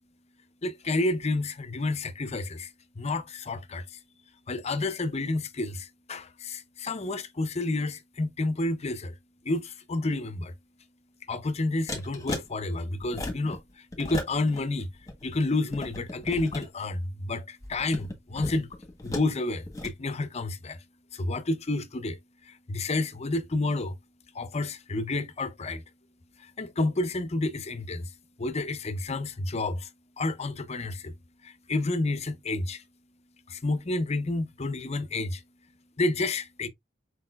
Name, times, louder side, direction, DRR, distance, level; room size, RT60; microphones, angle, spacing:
voice 1, 0.6-2.7 3.0-4.0 4.5-9.1 9.4-10.5 11.3-14.9 15.2-20.8 21.1-22.2 22.4-24.0 24.3-25.8 26.4-28.1 28.4-29.9 30.2-31.1 31.4-32.8 33.5-35.4 36.0-36.7, left 2 dB, 35° left, 0.6 m, -30 dB
sound 1, 11.9-12.5 13.0-13.6 13.9-14.6 14.9-16.7 17.6-19.3 19.7-19.9, left 2 dB, 20° left, 1.4 m, -36 dB
4.7 x 4.1 x 2.3 m
head